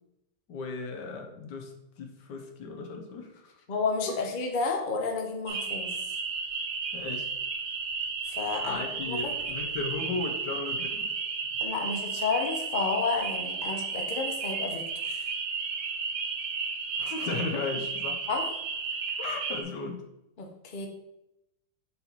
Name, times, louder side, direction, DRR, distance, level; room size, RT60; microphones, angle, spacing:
voice 1, 0.5-3.5 6.9-7.3 8.6-11.1 17.0-18.2 19.2-20.0, left 3 dB, 75° left, 3 dB, 1.5 m, -36 dB
voice 2, 3.7-6.0 8.3-9.5 11.6-15.3 18.3-18.4 20.4-20.9, left 4 dB, 40° left, 2 dB, 0.7 m, -31 dB
sound 1, 5.5-19.6, right 5 dB, 60° right, 1.1 m, -33 dB
5.4 x 4.4 x 4.1 m, 0.86 s
omnidirectional pair, 1.9 m